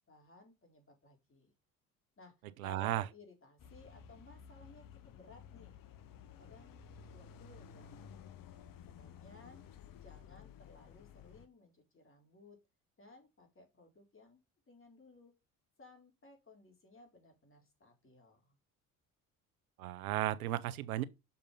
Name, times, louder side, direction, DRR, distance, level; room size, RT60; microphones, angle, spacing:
voice 1, 0.1-1.5 2.2-2.3 2.6-5.8 6.4-8.1 8.9-9.6 10.0-12.6 13.0-14.4 14.7-15.3 15.8-18.6, left 2 dB, 30° left, 4.2 m, -59 dB
voice 2, 2.6-3.0 19.8-21.0, right 14 dB, 80° right, 0.7 m, -34 dB
sound 1, 3.6-11.5, left 7 dB, 50° left, 1.1 m, -54 dB
6.6 x 5.5 x 5.4 m
hypercardioid pair, 55°, 43 cm